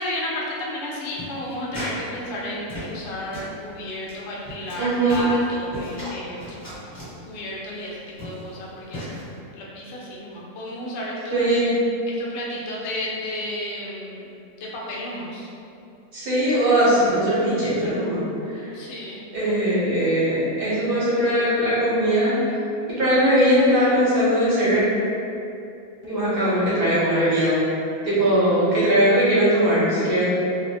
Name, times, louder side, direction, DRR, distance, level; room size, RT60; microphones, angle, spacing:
voice 1, 0.0-6.6 7.3-9.0 9.6-11.5 12.1-14.3 14.6-15.5 18.7-19.2, left 1 dB, 70° left, -4 dB, 0.6 m, -32 dB
sound 1, 1.2-2.0 2.3-3.1 3.3-3.5 4.0-4.1 4.4-4.8 5.1-6.1 6.4-7.1 7.8-7.9 8.2-8.5 8.9-9.2, equal, 30° left, 1.0 m, -35 dB
voice 2, 4.8-5.3 11.3-11.7 16.1-18.2 18.6-18.7 19.3-22.4 22.9-24.8 26.0-27.6 28.0-30.2, right 1 dB, 50° right, -10 dB, 0.7 m, -20 dB
2.6 x 2.1 x 2.6 m, 2.6 s
omnidirectional pair, 1.7 m